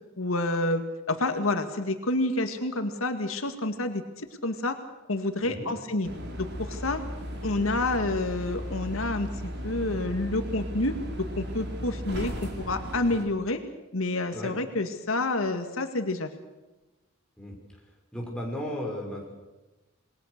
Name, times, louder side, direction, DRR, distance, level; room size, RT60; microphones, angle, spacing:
voice 1, 0.2-4.8 5.1-6.1 6.4-7.0 7.4-13.6 13.9-16.3, left 2 dB, 85° left, 7 dB, 2.0 m, -29 dB
sound 1, 6.0-13.2, equal, 55° right, 4.6 m, -36 dB
voice 2, 18.1-19.3, equal, 5° left, -2 dB, 6.4 m, -35 dB
28.0 x 21.0 x 6.7 m, 1.1 s
head